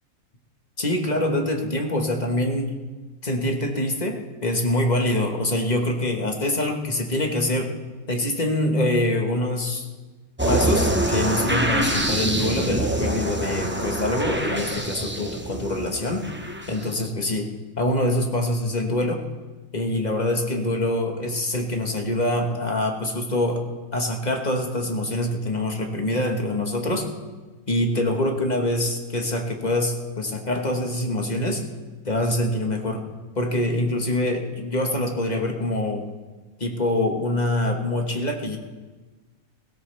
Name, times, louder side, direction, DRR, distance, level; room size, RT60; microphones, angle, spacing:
voice 1, 0.8-2.8 3.2-7.8 8.1-9.9 10.4-16.3 16.7-19.2 19.7-23.7 23.9-27.2 27.7-31.7 32.0-33.1 33.3-36.1 36.6-38.6, left 1 dB, 30° left, 3 dB, 1.5 m, -25 dB
sound 1, 10.4-17.0, right 1 dB, 10° right, 0.9 m, -25 dB
17.0 x 16.5 x 3.5 m, 1.3 s
omnidirectional pair, 1.6 m